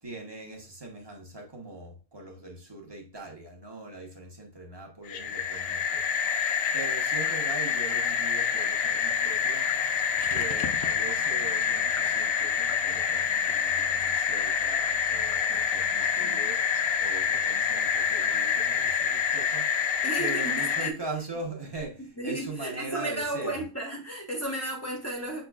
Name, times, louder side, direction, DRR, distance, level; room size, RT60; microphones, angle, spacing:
voice 1, 0.0-6.0 6.7-9.7 10.3-19.9 20.2-23.6, right 2 dB, 20° right, 1.0 m, -41 dB
sound 1, 5.1-20.9, left 7 dB, 70° left, 0.9 m, -27 dB
voice 2, 15.5-15.9 16.2-16.4 20.0-21.0 22.0-25.5, right 1 dB, 10° left, 0.9 m, -34 dB
6.0 x 3.8 x 2.4 m
omnidirectional pair, 1.6 m